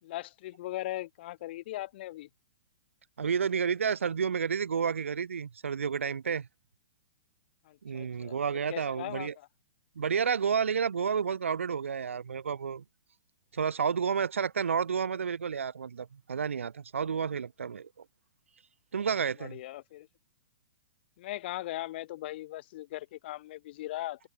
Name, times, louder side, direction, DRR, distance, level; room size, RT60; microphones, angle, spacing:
voice 1, 0.0-2.3 7.6-8.4 8.7-9.5 19.4-20.1 21.2-24.3, left 16 dB, 55° left, 3.7 m, -39 dB
voice 2, 3.2-6.5 7.8-9.3 9.9-12.8 13.5-18.0 18.9-19.6, right 6 dB, 85° right, 4.7 m, -30 dB
hypercardioid pair, 135°, 7 cm